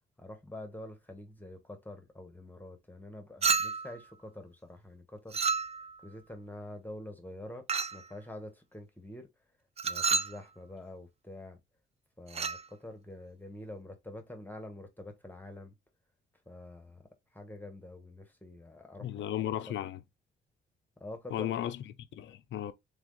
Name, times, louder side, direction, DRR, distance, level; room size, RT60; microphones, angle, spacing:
voice 1, 0.2-5.4 5.7-7.6 7.9-9.3 9.8-11.6 12.2-15.8 16.5-19.2 21.0-21.7, left 1 dB, 10° left, 1.3 m, -46 dB
Chink clink, 3.4-4.0 5.3-6.0 7.7-8.1 9.8-10.4 12.3-12.6, right 5 dB, 30° right, 0.5 m, -30 dB
voice 2, 19.0-20.0 21.3-21.8 22.1-22.7, left 11 dB, 70° left, 0.7 m, -34 dB
3.7 x 3.4 x 3.8 m
cardioid pair, 90°, 20 cm